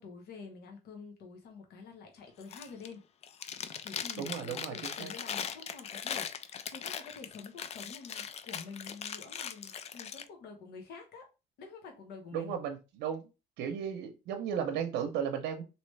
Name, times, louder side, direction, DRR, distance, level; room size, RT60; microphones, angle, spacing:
voice 1, 0.0-3.1 3.8-11.3 11.6-12.6, left 5 dB, 70° left, 1.0 m, -48 dB
Chewing mastication, 2.4-2.9 3.2-10.2, left 8 dB, 40° left, 0.4 m, -40 dB
voice 2, 4.2-5.1 12.3-13.3 13.6-15.6, right 8 dB, 85° right, 0.7 m, -35 dB
3.2 x 2.9 x 3.2 m
cardioid pair, 110°, 17 cm